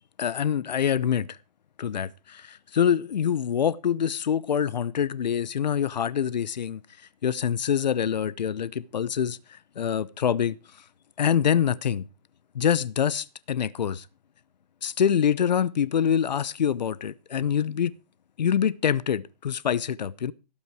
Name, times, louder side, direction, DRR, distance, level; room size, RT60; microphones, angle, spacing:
voice 1, 0.2-1.4 1.8-6.8 7.2-10.5 11.2-12.0 12.5-14.1 14.8-17.9 18.4-20.3, left 8 dB, 90° left, 0.8 m, -25 dB
17.0 x 8.8 x 4.7 m
hypercardioid pair, 150°, 21 cm